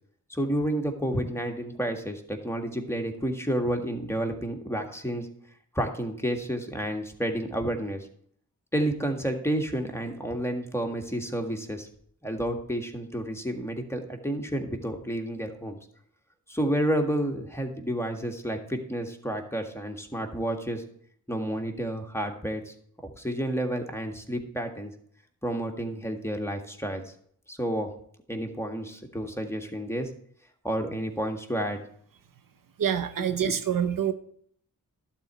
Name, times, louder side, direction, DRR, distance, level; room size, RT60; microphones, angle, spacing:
voice 1, 0.3-5.3 5.7-8.1 8.7-11.9 12.2-15.8 16.5-20.8 21.3-22.7 23.2-24.9 25.4-27.0 27.5-27.9 28.3-30.1 30.6-31.8 33.2-33.5, right 1 dB, 5° left, 3 dB, 1.8 m, -30 dB
voice 2, 32.8-34.1, right 8 dB, 65° right, 11 dB, 0.8 m, -26 dB
12.0 x 4.4 x 8.3 m, 0.63 s
cardioid pair, 55°, 35 cm